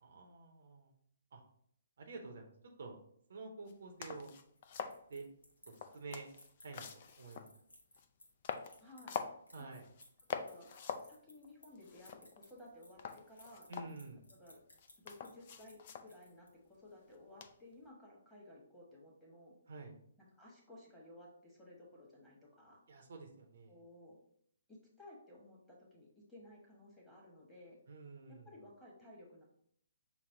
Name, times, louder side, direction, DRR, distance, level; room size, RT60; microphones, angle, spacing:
voice 1, 0.0-0.9 1.3-1.4 2.0-2.5 2.8-3.0 3.3-4.3 5.1-5.2 5.9-6.3 6.6-7.4 9.5-9.8 13.7-14.2 19.7-19.9 22.9-23.8 27.9-28.5, right 3 dB, 55° right, 3 dB, 0.7 m, -49 dB
sound 1, 3.7-3.8 4.0-5.0 5.7-7.6 8.0-8.1 8.4-9.4 9.8-10.0 10.3-11.1 11.4-11.5 11.8-12.6 13.0-14.3 14.8-16.1 17.4-17.7, left 7 dB, 40° left, 0.3 m, -45 dB
sound 2, 4.1-16.7, left 1 dB, 70° left, 0.9 m, -63 dB
voice 2, 8.8-9.2 9.6-9.8 10.3-10.7 11.0-13.7 14.3-14.6 15.0-19.6 20.4-22.8 23.7-24.2 24.7-27.8 28.3-29.4, left 1 dB, 5° left, -6 dB, 1.2 m, -57 dB
5.9 x 2.0 x 3.7 m, 0.67 s
figure-of-eight pair, 130°, 0 cm